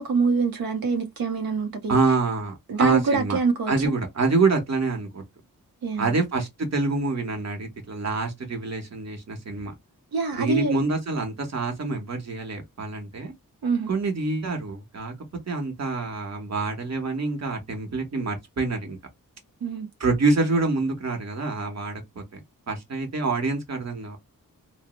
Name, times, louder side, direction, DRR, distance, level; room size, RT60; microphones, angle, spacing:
voice 1, 0.0-2.0 2.7-3.7 5.8-6.1 10.1-10.8 13.6-13.9 19.6-19.9, right 4 dB, 90° right, 0.6 m, -25 dB
voice 2, 1.9-3.4 3.7-5.2 6.0-9.7 10.4-13.3 13.9-15.1 15.5-19.0 20.0-22.4 22.7-24.2, right 3 dB, 50° right, 1.0 m, -26 dB
3.0 x 2.0 x 3.0 m
wide cardioid pair, 135°, 34 cm